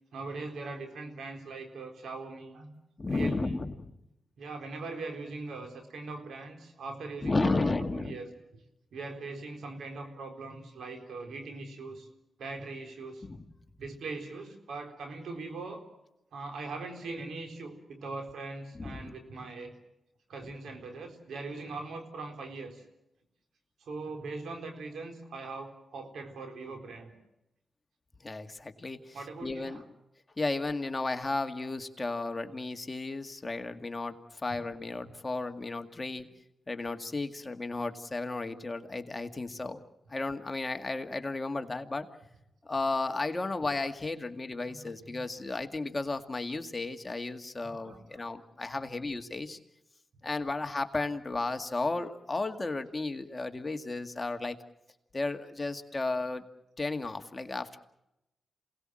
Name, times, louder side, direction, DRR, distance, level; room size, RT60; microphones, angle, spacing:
voice 1, 0.1-2.7 3.1-3.6 4.4-8.6 8.9-12.1 12.4-13.3 13.8-15.8 16.3-19.7 20.3-22.8 23.8-27.1 29.1-29.8 44.6-45.2 47.6-48.3, right 3 dB, 85° right, 4 dB, 3.9 m, -41 dB
voice 2, 3.0-3.9 7.2-8.2 13.2-13.4 18.8-19.1 28.2-29.8 30.4-36.3 36.7-39.8 40.1-42.1 42.6-49.6 50.2-54.6 55.1-56.4 56.8-57.8, left 3 dB, 30° left, 6 dB, 2.0 m, -33 dB
27.5 x 18.5 x 7.7 m, 0.88 s
cardioid pair, 65°, 0 cm